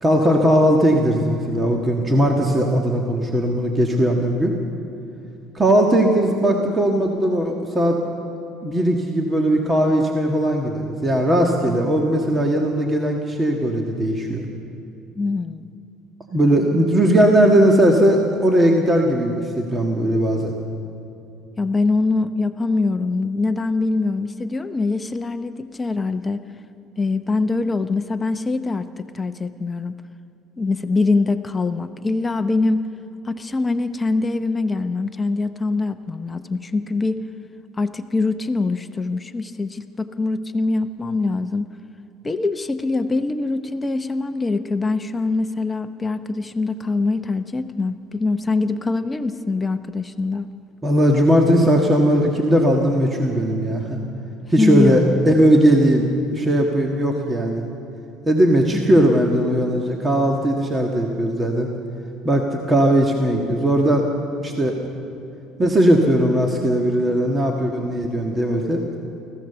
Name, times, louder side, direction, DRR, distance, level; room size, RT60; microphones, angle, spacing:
voice 1, 0.0-4.5 5.5-8.0 8.6-14.5 16.3-20.5 50.8-54.0 54.5-57.6 58.2-61.7 62.2-64.1 64.4-64.7 65.6-68.8, right 1 dB, 20° right, 1 dB, 1.7 m, -18 dB
voice 2, 15.1-15.7 21.6-26.4 27.0-29.9 30.6-32.8 33.2-37.2 37.8-41.7 42.2-50.5 54.6-55.2 58.7-59.0, left 3 dB, 15° left, 9 dB, 0.7 m, -23 dB
24.0 x 15.5 x 6.9 m, 2.6 s
supercardioid pair, 115°, 0 cm